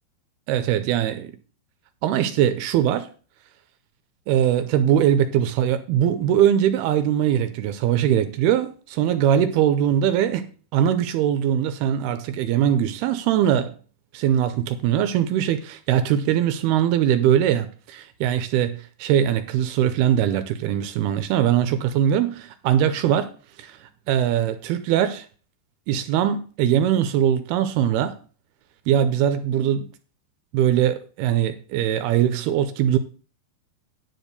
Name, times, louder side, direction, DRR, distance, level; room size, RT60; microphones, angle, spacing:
voice 1, 0.5-1.3 2.0-3.1 4.3-10.5 10.7-13.7 14.1-23.3 23.6-23.8 24.1-25.3 25.9-28.2 28.9-29.9 30.5-33.0, right 10 dB, 80° right, 2.4 m, -21 dB
10.0 x 4.6 x 6.6 m
omnidirectional pair, 4.9 m